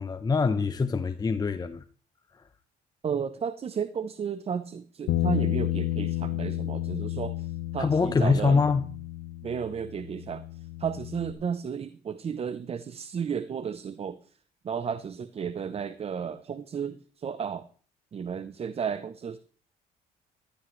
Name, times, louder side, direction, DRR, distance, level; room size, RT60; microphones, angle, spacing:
voice 1, 0.0-1.8 2.4-2.5 7.8-8.8, left 4 dB, 25° left, 0.8 m, -24 dB
voice 2, 3.0-8.6 9.4-10.4 10.8-14.2 14.6-17.7 18.1-19.4, right 7 dB, 40° right, 0.8 m, -33 dB
Bass guitar, 5.1-11.3, left 14 dB, 80° left, 1.1 m, -31 dB
15.0 x 12.5 x 3.2 m
cardioid pair, 95°, 17 cm